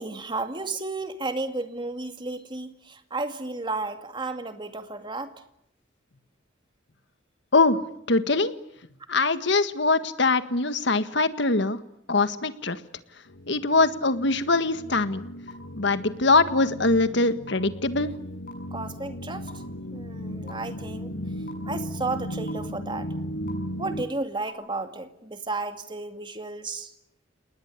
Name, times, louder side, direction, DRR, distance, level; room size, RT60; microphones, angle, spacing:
voice 1, 0.0-5.3 18.7-19.5 19.9-21.1 21.6-23.1 23.8-26.9, right 3 dB, 25° right, 8 dB, 2.3 m, -33 dB
voice 2, 8.1-8.5 9.1-11.8 12.1-12.8 13.5-15.2 15.8-18.1, left 3 dB, 65° left, 11 dB, 1.7 m, -22 dB
sound 1, 13.3-24.0, equal, 85° left, 1.8 m, -36 dB
sound 2, 15.5-15.6 16.5-16.6 17.5-17.6 18.5-18.6 19.5-19.6 20.5-20.6 21.5-21.6 22.5-22.6 23.5-23.6 24.5-24.6, left 5 dB, 45° left, 7.0 m, -41 dB
29.5 x 19.5 x 9.7 m, 0.78 s
head